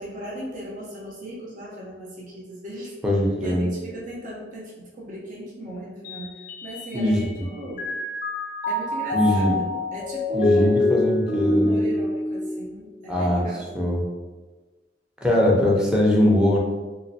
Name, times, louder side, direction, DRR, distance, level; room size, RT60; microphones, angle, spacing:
voice 1, 0.0-2.9 3.2-7.9 8.7-10.8 11.3-13.9, equal, 45° right, -5 dB, 0.7 m, -37 dB
voice 2, 3.0-3.6 6.9-7.2 9.1-9.5 10.3-11.8 13.1-13.4 13.7-14.0 15.2-16.6, left 1 dB, 5° right, -4 dB, 0.6 m, -21 dB
Mallet percussion, 6.1-7.4 7.8-13.2, left 2 dB, 45° left, 0.3 m, -25 dB
3.1 x 2.9 x 2.7 m, 1.3 s
head